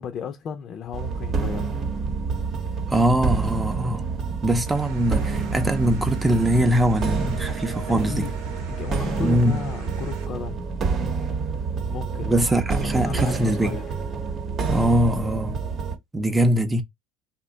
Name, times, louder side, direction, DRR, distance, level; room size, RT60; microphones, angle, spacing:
voice 1, 0.0-1.7 7.9-8.3 8.7-10.6 11.9-12.5 12.8-13.9, left 6 dB, 45° left, 0.5 m, -34 dB
sound 1, 0.9-16.0, right 4 dB, 45° right, 0.8 m, -28 dB
voice 2, 2.9-4.0 4.4-8.3 9.2-9.6 12.2-13.8 14.7-15.6 16.1-16.8, right 1 dB, 10° right, 0.6 m, -22 dB
sound 2, 4.7-10.3, right 5 dB, 75° right, 0.9 m, -44 dB
2.7 x 2.2 x 3.8 m
supercardioid pair, 95°, 0 cm